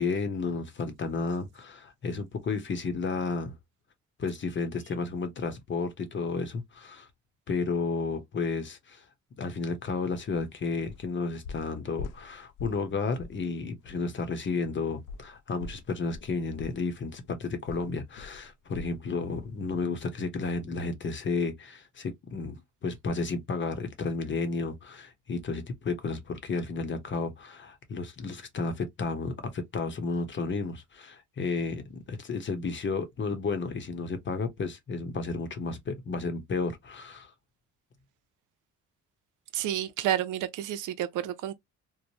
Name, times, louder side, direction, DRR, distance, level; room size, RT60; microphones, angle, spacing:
voice 1, 0.0-3.6 4.2-7.1 7.5-9.0 9.4-37.3, left 4 dB, 40° left, 0.8 m, -32 dB
sound 1, 10.3-10.5 10.9-11.1 11.4-12.9 13.2-13.4 13.8-14.0 15.1-19.1 19.4-19.6 20.0-20.1, left 4 dB, 85° left, 0.5 m, -44 dB
voice 2, 39.5-41.5, right 11 dB, 85° right, 0.5 m, -30 dB
3.1 x 2.1 x 2.6 m
cardioid pair, 90°, 30 cm